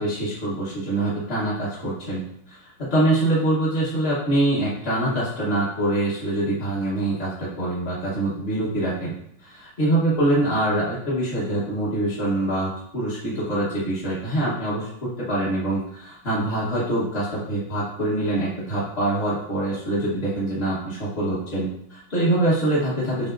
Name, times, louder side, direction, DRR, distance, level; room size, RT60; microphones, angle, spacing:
voice 1, 0.0-2.2 2.5-9.1 9.4-23.3, right 1 dB, 35° left, -9 dB, 1.1 m, -24 dB
5.8 x 3.6 x 2.5 m, 0.74 s
omnidirectional pair, 2.3 m